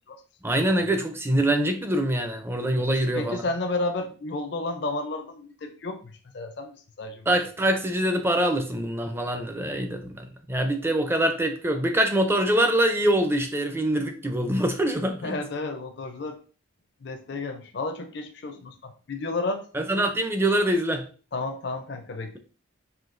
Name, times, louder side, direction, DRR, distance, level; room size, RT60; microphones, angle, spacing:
voice 1, 0.4-3.4 7.3-15.4 19.7-21.0, right 1 dB, 10° right, 5 dB, 0.4 m, -24 dB
voice 2, 3.1-7.3 15.2-16.4 17.0-19.6 21.3-22.4, left 2 dB, 55° left, 5 dB, 0.5 m, -32 dB
5.7 x 2.7 x 2.6 m, 0.39 s
head